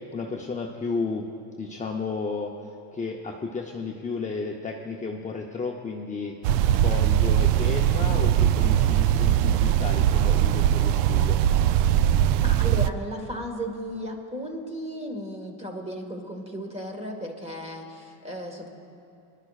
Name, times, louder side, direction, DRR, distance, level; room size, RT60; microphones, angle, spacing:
voice 1, 0.1-1.3 1.6-6.4 6.7-11.4, left 4 dB, 15° left, 0 dB, 0.6 m, -33 dB
sound 1, 6.4-12.9, right 11 dB, 85° right, 0.5 m, -21 dB
voice 2, 12.4-18.7, equal, 15° right, 3 dB, 1.6 m, -35 dB
23.0 x 11.5 x 2.4 m, 2.7 s
cardioid pair, 115°, 44 cm